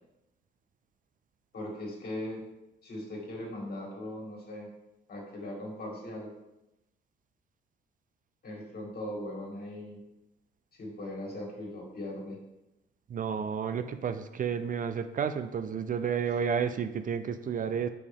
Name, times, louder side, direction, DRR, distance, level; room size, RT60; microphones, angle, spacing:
voice 1, 1.5-2.4 2.8-4.7 5.1-6.3 8.4-10.0 10.7-12.4 14.5-14.6, left 1 dB, 50° left, -1 dB, 2.3 m, -39 dB
voice 2, 13.1-17.9, right 7 dB, 45° right, 10 dB, 0.4 m, -31 dB
6.4 x 5.3 x 3.6 m, 0.92 s
cardioid pair, 90°, 20 cm